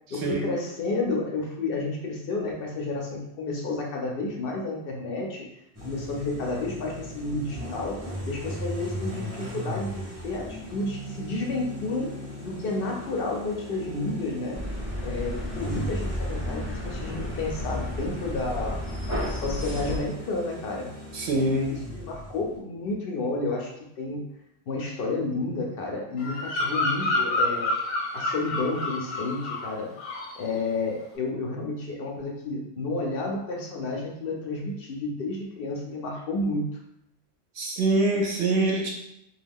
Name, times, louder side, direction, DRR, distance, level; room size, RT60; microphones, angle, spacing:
voice 1, 0.1-5.4 5.8-8.0 8.2-12.1 12.4-14.6 15.0-18.8 19.3-20.9 21.4-24.2 24.7-27.7 28.1-29.9 30.4-36.7, left 3 dB, 60° left, 0 dB, 0.6 m, -31 dB
sound 1, 5.7-22.6, equal, 25° right, 0.4 m, -38 dB
sound 2, 14.5-20.0, left 1 dB, 20° left, 0.6 m, -32 dB
voice 2, 21.1-21.7 37.6-38.9, right 2 dB, 65° right, -1 dB, 0.8 m, -24 dB
Bird vocalization bird call bird song, 26.2-29.7 30.0-30.4, left 2 dB, 90° left, 1.1 m, -28 dB
2.4 x 2.2 x 3.4 m, 0.80 s
omnidirectional pair, 1.3 m